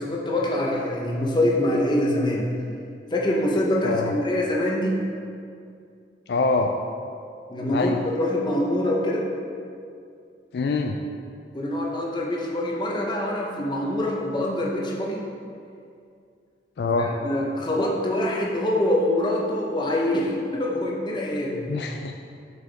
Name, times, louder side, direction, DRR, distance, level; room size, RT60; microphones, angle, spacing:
voice 1, 0.0-2.5 3.1-5.0 7.5-9.2 11.5-15.2 17.0-21.7, left 1 dB, 25° left, -2 dB, 0.9 m, -25 dB
voice 2, 6.3-6.7 7.7-8.0 10.5-11.0 16.8-17.1 21.7-22.1, left 3 dB, 65° left, 4 dB, 0.3 m, -24 dB
7.5 x 5.6 x 3.4 m, 2.4 s
head